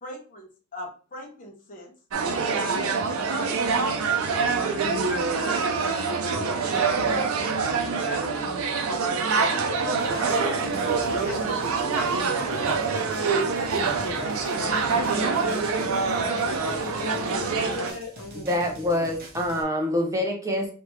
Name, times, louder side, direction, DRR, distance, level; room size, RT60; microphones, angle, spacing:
voice 1, 0.0-1.9 2.5-3.5 8.1-8.5 11.2-12.3, left 1 dB, 40° left, -1 dB, 0.9 m, -40 dB
sound 1, 2.1-17.9, right 4 dB, 85° right, 0.6 m, -25 dB
voice 2, 7.5-8.8 9.4-11.7 14.0-15.7 16.1-19.1, left 3 dB, 80° left, 2 dB, 1.1 m, -39 dB
sound 2, 10.0-19.6, right 1 dB, 45° right, 0.8 m, -45 dB
voice 3, 18.5-20.7, left 1 dB, 15° right, 1 dB, 0.7 m, -25 dB
3.4 x 2.8 x 3.1 m, 0.38 s
head